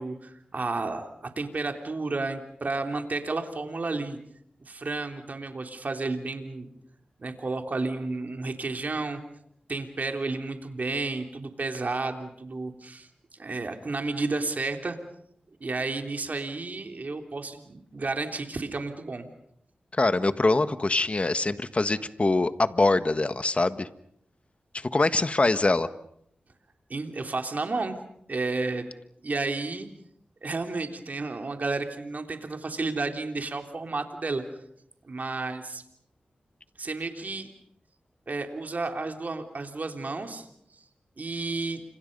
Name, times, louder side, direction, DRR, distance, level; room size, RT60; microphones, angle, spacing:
voice 1, 0.0-4.2 4.7-6.7 7.2-9.2 9.7-13.1 13.4-15.0 15.6-19.3 26.9-28.0 28.3-28.8 29.2-29.9 30.4-34.4 35.0-35.8 36.8-37.5 38.3-40.5 41.2-41.8, right 3 dB, 55° right, 5 dB, 3.4 m, -32 dB
voice 2, 19.9-23.9 24.7-25.9, left 2 dB, 40° left, 11 dB, 1.5 m, -24 dB
30.0 x 27.0 x 5.5 m, 0.72 s
cardioid pair, 50°, 3 cm